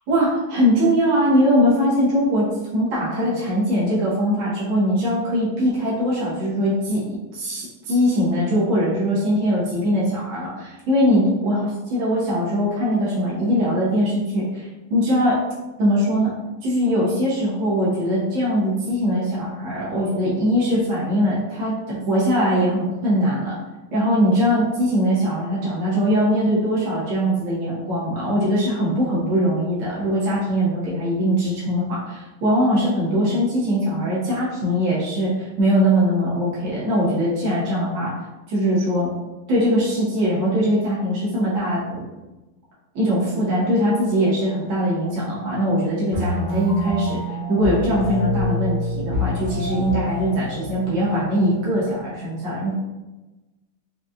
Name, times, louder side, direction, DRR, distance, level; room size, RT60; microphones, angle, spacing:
voice 1, 0.1-15.4 15.8-16.3 16.6-23.5 23.9-38.1 38.5-39.1 39.5-42.0 43.0-47.2 47.5-52.7, equal, 75° right, -8 dB, 1.9 m, -21 dB
sound 1, 46.1-52.1, equal, 50° right, 0.7 m, -27 dB
5.1 x 2.6 x 2.3 m, 1.1 s
omnidirectional pair, 2.2 m